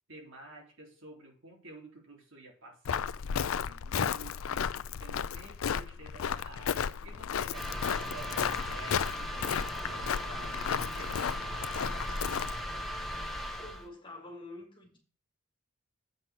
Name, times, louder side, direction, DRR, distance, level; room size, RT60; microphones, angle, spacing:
voice 1, 0.1-8.5 8.7-11.2, right 2 dB, 65° right, 3.5 m, -51 dB
Walk footsteps, 2.8-12.6, left 7 dB, 75° left, 0.4 m, -34 dB
sound 1, 7.5-13.9, equal, ahead, 1.7 m, -38 dB
voice 2, 13.6-15.0, left 2 dB, 25° left, 2.7 m, -47 dB
7.8 x 6.0 x 6.0 m
head